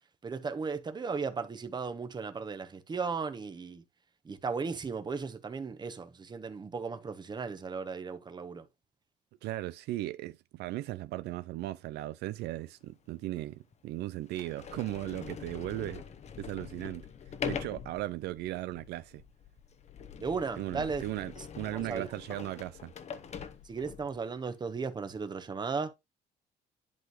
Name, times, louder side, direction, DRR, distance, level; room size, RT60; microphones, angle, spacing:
voice 1, 0.2-3.8 4.2-8.7 20.2-21.1 21.3-21.5 21.7-22.4 23.6-25.9, right 5 dB, 25° right, 1.0 m, -36 dB
voice 2, 9.4-16.0 16.4-17.1 17.4-19.2 20.6-22.9, right 16 dB, 75° right, 0.4 m, -37 dB
Sliding door, 12.9-13.0 13.7-13.8 14.3-24.2, left 7 dB, 40° left, 0.9 m, -43 dB
10.5 x 3.8 x 3.0 m
cardioid pair, 110°, 17 cm